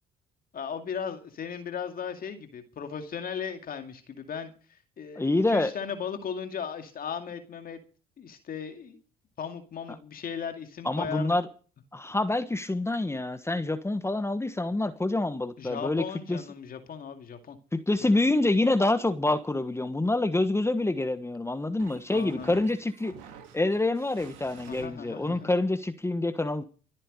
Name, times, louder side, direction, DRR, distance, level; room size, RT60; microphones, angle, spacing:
voice 1, 0.5-7.8 8.2-9.0 9.4-11.4 15.6-17.6 18.0-18.1 22.1-22.6 24.7-25.5, left 7 dB, 50° left, 2.3 m, -37 dB
voice 2, 5.2-5.7 10.8-11.5 11.9-16.0 16.3-16.4 17.7-23.1 23.5-26.6, left 2 dB, 15° left, 1.3 m, -26 dB
sound 1, 21.2-24.9, right 7 dB, 75° right, 3.0 m, -51 dB
24.5 x 8.9 x 5.1 m
hypercardioid pair, 60°, 19 cm